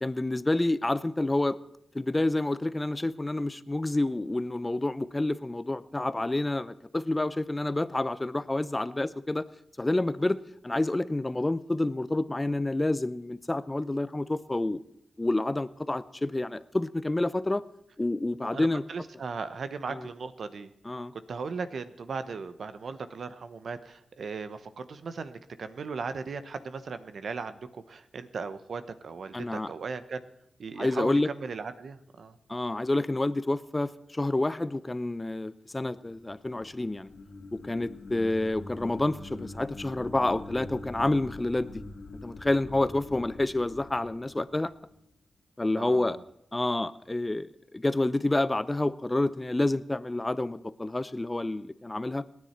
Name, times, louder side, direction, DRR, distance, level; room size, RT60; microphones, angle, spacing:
voice 1, 0.0-1.6 1.9-9.4 9.8-10.4 10.6-14.8 15.2-17.6 18.0-18.8 19.9-20.1 20.8-21.1 29.3-29.7 30.8-31.3 32.5-37.1 37.6-41.8 42.2-44.7 45.6-46.2 46.5-52.2, left 2 dB, 20° left, 16 dB, 0.6 m, -28 dB
voice 2, 18.5-20.7 21.1-30.2 30.6-32.4 45.8-46.2, right 5 dB, 75° right, 11 dB, 0.9 m, -37 dB
sound 1, 35.9-45.1, left 3 dB, 90° left, 2.3 m, -44 dB
28.0 x 9.7 x 4.4 m, 0.74 s
cardioid pair, 70°, 0 cm